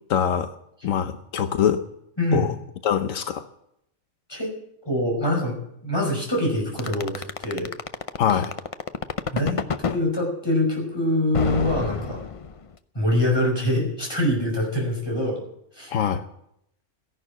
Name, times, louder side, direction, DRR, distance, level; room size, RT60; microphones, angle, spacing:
voice 1, 0.1-0.5 0.8-1.8 2.3-2.5 2.8-3.4 8.2-8.5 15.9-16.2, left 8 dB, 85° left, 9 dB, 1.2 m, -23 dB
voice 2, 2.2-2.5 4.3-4.5 4.9-5.5 5.8-7.7 9.3-9.6 9.9-12.2 12.9-15.4 15.8-15.9, left 1 dB, 20° left, -1 dB, 5.7 m, -24 dB
sound 1, 6.8-10.0 11.3-12.7, left 5 dB, 40° left, 0.5 m, -27 dB
14.5 x 11.0 x 7.4 m, 0.76 s
omnidirectional pair, 1.3 m